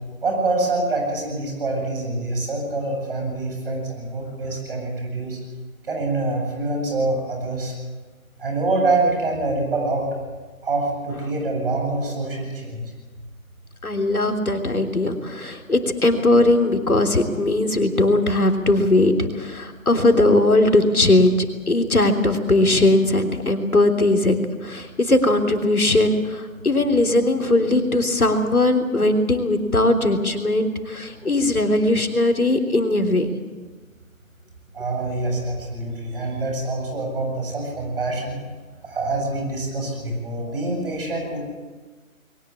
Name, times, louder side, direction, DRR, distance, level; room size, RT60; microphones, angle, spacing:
voice 1, 0.2-5.4 5.8-7.7 8.4-10.1 10.6-12.9 31.1-31.3 34.7-38.4 38.8-41.5, right 2 dB, 40° right, 2 dB, 8.0 m, -25 dB
voice 2, 13.8-24.4 24.6-33.3, left 2 dB, 85° left, 5 dB, 3.5 m, -19 dB
22.5 x 19.0 x 8.4 m, 1.3 s
figure-of-eight pair, 155°, 42 cm